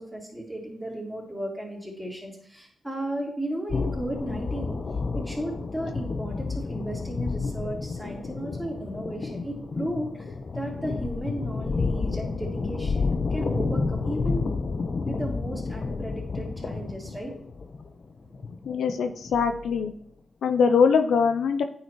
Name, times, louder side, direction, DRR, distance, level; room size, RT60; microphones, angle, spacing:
voice 1, 0.0-4.8 5.1-14.5 15.1-17.3, right 1 dB, 5° right, -4 dB, 3.4 m, -35 dB
sound 1, 3.7-19.9, left 4 dB, 55° left, 0.8 m, -30 dB
voice 2, 18.7-19.9 20.4-21.6, left 6 dB, 75° left, 7 dB, 0.4 m, -22 dB
9.1 x 5.7 x 3.0 m, 0.65 s
supercardioid pair, 40°, 0 cm